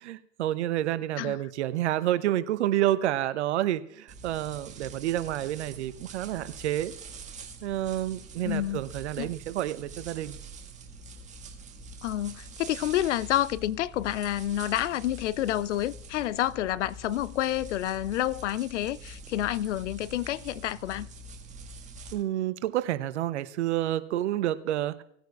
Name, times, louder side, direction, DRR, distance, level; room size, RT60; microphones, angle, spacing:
voice 1, 0.0-6.9 7.6-10.4 22.1-25.0, right 13 dB, 55° right, 0.8 m, -29 dB
sound 1, 4.1-22.1, right 2 dB, 15° right, 1.6 m, -45 dB
voice 2, 8.4-8.8 9.2-9.3 12.0-21.1, left 13 dB, 65° left, 0.5 m, -29 dB
18.5 x 9.0 x 2.3 m
hypercardioid pair, 110°, 40 cm